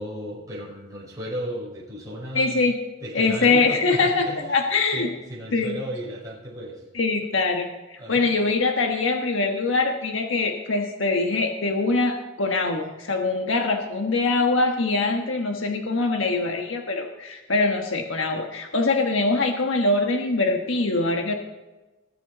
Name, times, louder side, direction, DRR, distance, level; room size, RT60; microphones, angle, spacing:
voice 1, 0.0-2.7 3.0-4.6 4.9-6.8 8.0-8.2, equal, 20° right, -5 dB, 5.3 m, -34 dB
voice 2, 2.3-2.7 3.1-5.1 5.5-5.8 6.9-21.3, left 3 dB, 80° left, 3 dB, 1.3 m, -23 dB
20.5 x 8.4 x 4.1 m, 1.1 s
head